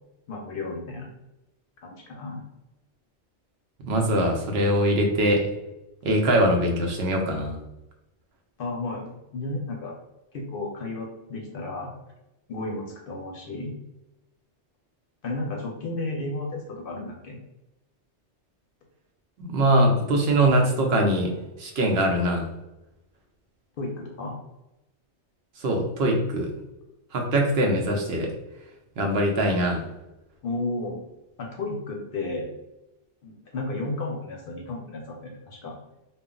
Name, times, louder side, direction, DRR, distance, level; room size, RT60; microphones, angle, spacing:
voice 1, 0.3-1.1 1.8-2.4 8.6-9.9 10.3-11.9 12.5-13.8 15.2-17.4 23.8-24.4 30.4-31.0 31.4-32.5 33.2-35.7, left 2 dB, 60° left, 1 dB, 0.7 m, -33 dB
voice 2, 3.8-5.4 6.0-7.6 19.4-21.3 21.6-22.5 25.6-26.5 27.1-28.3 29.0-29.8, right 1 dB, 70° right, 2 dB, 0.8 m, -22 dB
2.2 x 2.0 x 3.6 m, 0.96 s
omnidirectional pair, 1.2 m